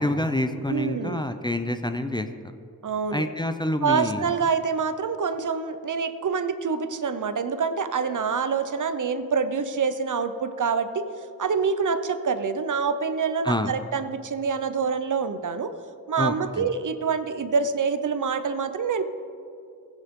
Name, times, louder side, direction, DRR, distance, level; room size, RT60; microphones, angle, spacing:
voice 1, 0.0-2.3 3.1-4.3 13.4-13.7 16.2-16.7, left 1 dB, 10° left, 8 dB, 0.6 m, -27 dB
voice 2, 0.7-1.2 2.8-3.3 3.8-11.0 11.4-15.7 16.1-19.1, right 5 dB, 55° right, 11 dB, 0.7 m, -26 dB
15.5 x 8.2 x 3.7 m, 2.5 s
cardioid pair, 50°, 38 cm